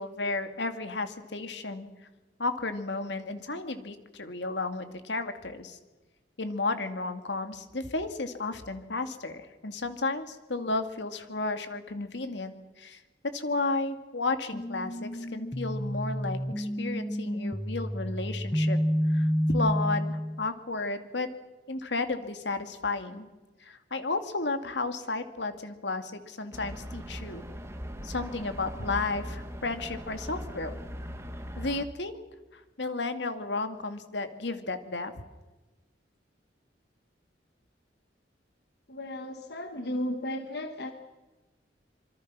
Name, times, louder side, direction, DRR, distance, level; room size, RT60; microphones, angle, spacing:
voice 1, 0.0-1.9 2.4-5.8 6.4-13.0 13.3-18.8 19.1-21.3 21.7-23.3 23.6-27.4 28.0-30.7 31.6-32.2 32.5-35.1 40.4-40.6, left 3 dB, 80° left, 8 dB, 2.2 m, -33 dB
sound 1, 14.5-20.5, equal, 15° left, 0.9 m, -29 dB
sound 2, 26.5-31.9, equal, 15° right, 1.9 m, -40 dB
voice 2, 38.9-40.9, left 1 dB, 65° left, 6 dB, 1.5 m, -34 dB
26.5 x 24.5 x 6.1 m, 1.2 s
head